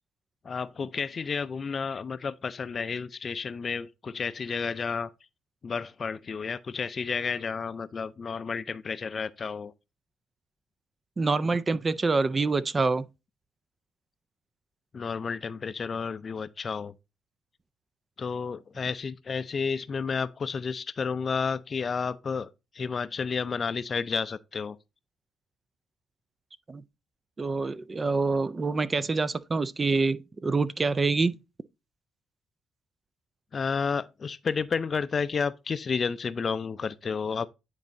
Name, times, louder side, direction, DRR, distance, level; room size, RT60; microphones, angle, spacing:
voice 1, 0.4-5.1 5.6-9.7 14.9-16.9 18.2-24.8 33.5-37.5, left 5 dB, 40° left, 0.4 m, -31 dB
voice 2, 11.2-13.1 26.7-26.8 27.4-31.4, right 3 dB, 30° right, 0.4 m, -26 dB
9.5 x 4.0 x 2.6 m
cardioid pair, 90°, 0 cm